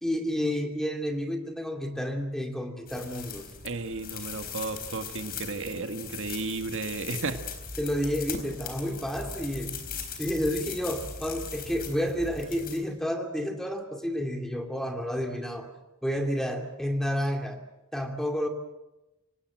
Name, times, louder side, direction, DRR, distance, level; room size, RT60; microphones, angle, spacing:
voice 1, 0.0-3.5 7.8-9.7 10.2-15.7 16.0-17.6 17.9-18.5, equal, ahead, 4 dB, 2.6 m, -30 dB
sound 1, 2.9-12.8, left 5 dB, 45° left, 4.1 m, -39 dB
voice 2, 3.6-7.4, right 3 dB, 65° right, 7 dB, 1.7 m, -33 dB
26.0 x 18.5 x 7.8 m, 0.99 s
head